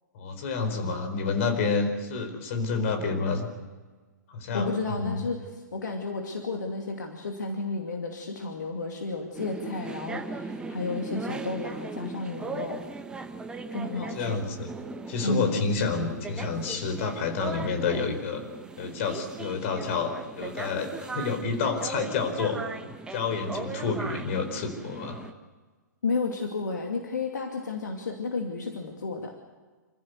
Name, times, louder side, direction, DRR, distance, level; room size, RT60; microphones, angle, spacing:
voice 1, 0.1-3.5 4.3-5.2 13.9-14.7 15.1-18.5 18.8-25.2, left 4 dB, 45° left, 7 dB, 4.4 m, -29 dB
voice 2, 4.5-12.8 13.7-14.4 15.2-15.7 26.0-29.3, left 3 dB, 70° left, 2 dB, 2.6 m, -32 dB
sound 1, 9.3-25.3, right 4 dB, 10° right, 1.2 m, -38 dB
27.0 x 15.5 x 8.0 m, 1.3 s
figure-of-eight pair, 115°, 10 cm